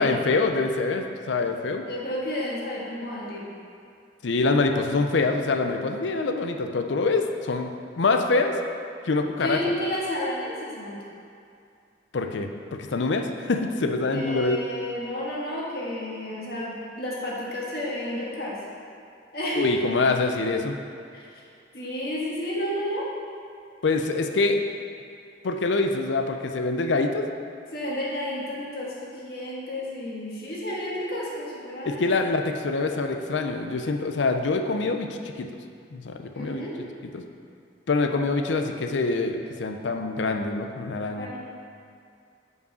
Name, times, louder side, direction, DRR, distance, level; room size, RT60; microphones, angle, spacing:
voice 1, 0.0-1.8 4.2-7.7 8.0-8.6 9.0-9.6 12.1-14.6 19.6-20.8 23.8-24.6 25.4-27.3 31.8-35.5 35.9-36.6 37.1-37.2 37.9-41.3, left 3 dB, 80° left, 5 dB, 0.5 m, -25 dB
voice 2, 1.8-3.5 9.4-11.0 14.1-18.6 19.3-19.9 21.1-21.5 21.7-23.1 27.7-32.1 36.3-36.7 41.2-41.4, left 1 dB, 55° left, -5 dB, 1.4 m, -31 dB
5.5 x 4.7 x 6.2 m, 2.4 s
head